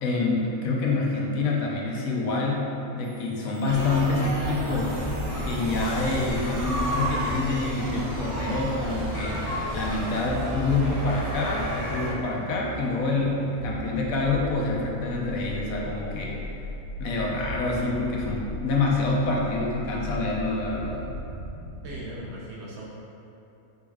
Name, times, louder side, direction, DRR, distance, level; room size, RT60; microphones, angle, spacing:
voice 1, 0.0-2.6 2.9-5.0 5.4-9.4 9.7-16.3 17.0-21.0, left 3 dB, 75° left, -3 dB, 1.1 m, -27 dB
sound 1, 3.0-22.0, equal, 90° right, 1.1 m, -40 dB
sound 2, 3.6-12.1, right 1 dB, 20° right, 0.5 m, -31 dB
voice 2, 21.8-22.8, right 1 dB, 60° right, -5 dB, 0.9 m, -38 dB
4.8 x 3.9 x 2.3 m, 3.0 s
omnidirectional pair, 1.5 m